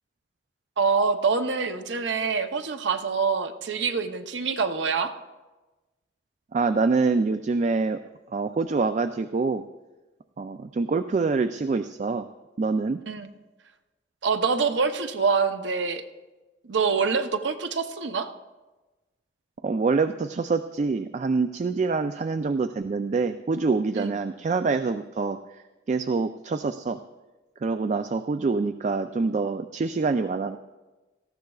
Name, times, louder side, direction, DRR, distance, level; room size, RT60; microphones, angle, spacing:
voice 1, 0.8-5.1 13.1-13.3 14.2-16.0 16.6-18.3 23.9-24.1, right 5 dB, 85° right, 8 dB, 0.7 m, -25 dB
voice 2, 6.5-8.0 8.3-9.6 10.4-12.3 12.6-13.0 19.6-27.0 27.6-30.6, right 4 dB, 40° right, 10 dB, 0.3 m, -26 dB
18.0 x 14.5 x 2.4 m, 1.2 s
head